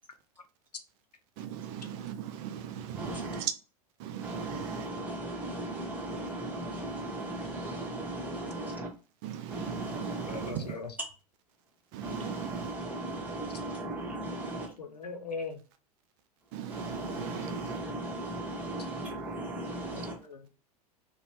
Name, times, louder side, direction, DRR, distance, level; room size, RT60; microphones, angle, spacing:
voice 1, 1.4-3.0 3.4-3.5 4.0-4.5 9.2-9.8 10.4-10.6 11.9-12.4 16.5-16.8 17.2-17.5, right 10 dB, 45° right, 0.4 m, -38 dB
voice 2, 2.9-3.4 4.2-8.9 9.5-10.5 12.0-14.7 16.7-20.2, right 1 dB, 10° right, 1.1 m, -37 dB
voice 3, 10.3-11.0 14.8-15.6 19.9-20.5, left 4 dB, 90° left, 0.5 m, -40 dB
2.5 x 2.2 x 3.0 m
figure-of-eight pair, 90°, 20 cm